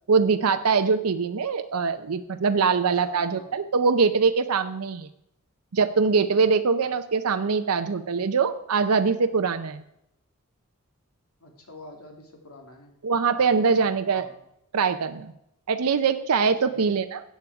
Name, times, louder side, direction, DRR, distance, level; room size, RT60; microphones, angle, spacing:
voice 1, 0.1-5.1 5.7-9.8 13.0-14.3 14.7-15.3 15.7-17.2, right 5 dB, 90° right, 8 dB, 0.6 m, -23 dB
voice 2, 2.7-3.5 6.8-6.9 11.4-12.9 14.1-14.3 16.6-16.9, left 1 dB, 85° left, 2 dB, 2.9 m, -47 dB
14.0 x 8.5 x 4.8 m, 0.81 s
head